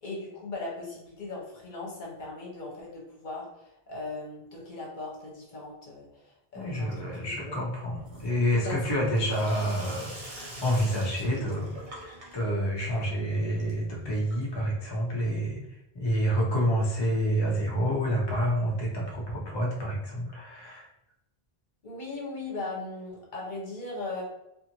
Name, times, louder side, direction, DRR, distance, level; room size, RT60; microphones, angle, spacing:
voice 1, 0.0-6.9 7.2-7.5 8.6-9.0 21.8-24.2, left 2 dB, 50° left, -4 dB, 1.0 m, -38 dB
voice 2, 6.5-20.9, equal, 30° left, -3 dB, 0.5 m, -28 dB
Sink (filling or washing), 8.0-14.7, right 1 dB, 40° right, 0.7 m, -45 dB
2.5 x 2.5 x 2.9 m, 0.85 s
omnidirectional pair, 1.1 m